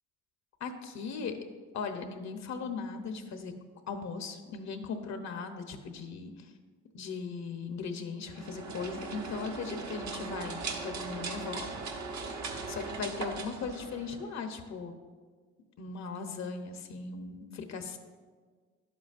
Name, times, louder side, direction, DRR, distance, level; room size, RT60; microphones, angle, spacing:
voice 1, 0.6-1.4 1.7-3.5 3.9-6.5 6.9-11.7 12.7-14.9 15.8-18.0, left 5 dB, 65° left, 6 dB, 0.9 m, -38 dB
sound 1, 8.3-14.4, right 4 dB, 70° right, 1.1 m, -39 dB
11.0 x 7.8 x 2.5 m, 1.5 s
cardioid pair, 90°, 30 cm